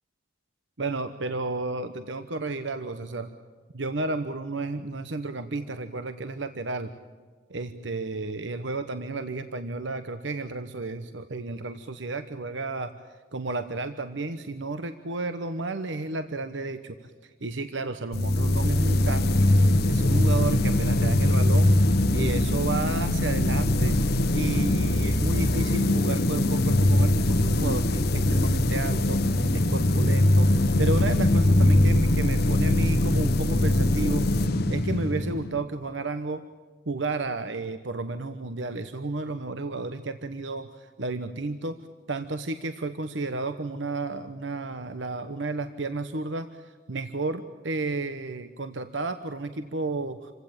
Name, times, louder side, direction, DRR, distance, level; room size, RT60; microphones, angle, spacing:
voice 1, 0.8-3.3 3.7-6.9 7.5-12.9 13.3-34.3 34.7-36.4 36.9-41.8 42.1-50.3, right 3 dB, 80° right, 9 dB, 1.1 m, -32 dB
sound 1, 18.1-35.6, left 1 dB, 60° left, 1.0 m, -22 dB
27.5 x 16.5 x 8.9 m, 1.5 s
head